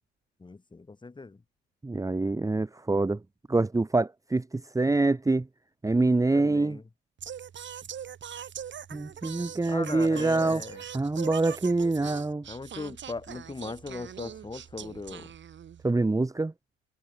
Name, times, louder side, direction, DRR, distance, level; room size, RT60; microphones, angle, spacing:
voice 1, 0.4-1.4 6.3-6.8 9.7-10.8 12.5-15.3, left 3 dB, 15° left, 4.1 m, -39 dB
voice 2, 1.8-3.2 3.5-5.5 5.8-6.8 8.9-10.6 10.9-12.4 15.8-16.5, right 2 dB, 10° right, 2.4 m, -25 dB
Singing, 7.2-15.9, right 9 dB, 35° right, 3.9 m, -42 dB
supercardioid pair, 115°, 32 cm